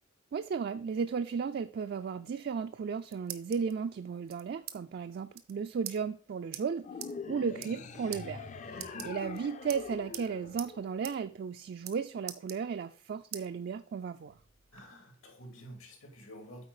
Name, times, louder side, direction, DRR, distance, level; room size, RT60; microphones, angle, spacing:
voice 1, 0.3-6.9 7.3-14.4, right 6 dB, 50° right, 9 dB, 0.3 m, -35 dB
sound 1, 2.7-3.7 4.3-4.8 5.0-5.1 5.3-5.5 5.8-6.0 6.5-6.6 7.0-7.1 7.5-7.8 8.1-8.2 8.7-9.4 9.7-10.3 10.6-10.7 11.0-11.2 11.4-12.0 12.3-13.0 13.3-13.5 13.9-14.8, right 12 dB, 85° right, 0.8 m, -43 dB
sound 2, 6.8-11.3, left 4 dB, 35° left, 0.5 m, -44 dB
voice 2, 8.7-9.1 14.7-16.6, left 1 dB, 75° left, 2 dB, 2.4 m, -49 dB
8.3 x 4.6 x 4.8 m, 0.43 s
head